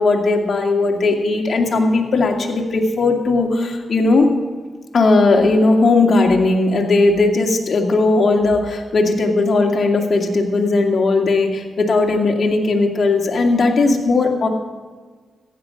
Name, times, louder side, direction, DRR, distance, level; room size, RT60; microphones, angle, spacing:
voice 1, 0.0-4.3 4.9-14.5, left 3 dB, 55° left, 2 dB, 2.2 m, -17 dB
15.0 x 10.0 x 5.8 m, 1.4 s
cardioid pair, 60°, 0 cm